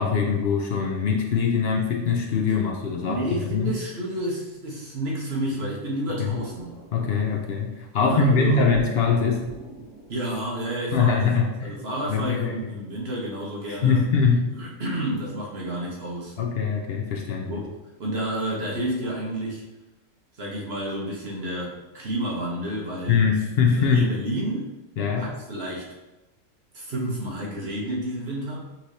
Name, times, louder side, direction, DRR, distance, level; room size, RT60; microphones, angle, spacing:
voice 1, 0.0-3.2 3.5-3.7 6.2-6.4 6.9-9.4 10.9-11.7 12.1-12.7 13.7-14.5 16.4-17.6 23.1-24.1 25.0-25.3, left 5 dB, 60° left, 2 dB, 0.7 m, -22 dB
voice 2, 3.0-6.8 8.0-8.7 10.1-11.2 11.6-14.0 14.5-16.3 17.5-19.6 20.4-23.2 23.8-24.7 25.2-25.9 26.7-28.6, right 1 dB, 50° right, -4 dB, 1.2 m, -30 dB
sound 1, 6.2-7.7 8.7-11.1, right 3 dB, 75° right, 1.3 m, -42 dB
5.6 x 3.2 x 2.7 m, 1.0 s
omnidirectional pair, 1.4 m